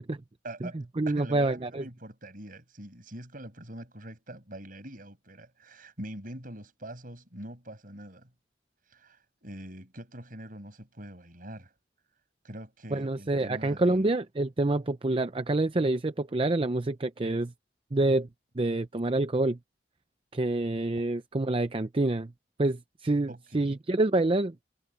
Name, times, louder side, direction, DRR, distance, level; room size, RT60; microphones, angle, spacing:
voice 1, 0.4-8.3 8.9-11.7 12.4-14.1 23.3-23.8, right 1 dB, 50° right, 7.0 m, -44 dB
voice 2, 1.0-1.8 12.9-17.5 17.9-18.3 18.6-19.6 20.3-22.3 22.6-24.5, right 2 dB, 30° right, 0.6 m, -27 dB
head